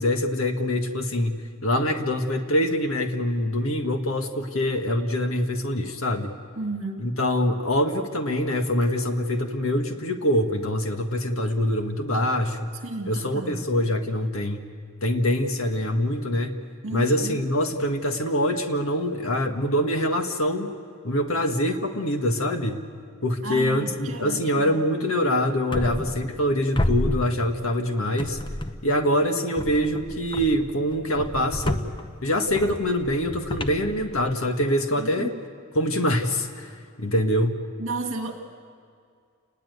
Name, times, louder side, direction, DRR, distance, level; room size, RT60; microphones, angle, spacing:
voice 1, 0.0-6.4 7.0-12.7 13.0-14.6 15.0-16.5 16.9-20.7 21.0-22.8 23.2-28.4 28.8-31.8 32.2-35.3 35.7-37.6, left 1 dB, 70° left, 5 dB, 1.8 m, -24 dB
voice 2, 6.6-7.1 12.8-13.7 16.8-17.4 23.4-24.8 35.0-35.4 37.8-38.3, right 2 dB, 65° right, 3 dB, 2.3 m, -33 dB
sound 1, 25.7-26.5 26.7-27.8 28.2-29.0 29.6-34.6, left 1 dB, 20° left, 0.8 m, -31 dB
29.5 x 20.0 x 8.1 m, 2.3 s
head